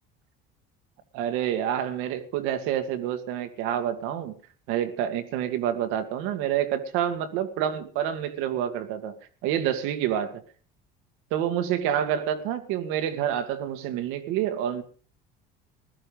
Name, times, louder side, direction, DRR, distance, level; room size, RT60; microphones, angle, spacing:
voice 1, 1.1-4.4 4.7-9.1 9.4-10.4 11.3-14.8, right 10 dB, 80° right, 8 dB, 2.1 m, -28 dB
16.0 x 12.5 x 5.2 m, 0.42 s
supercardioid pair, 105°, 21 cm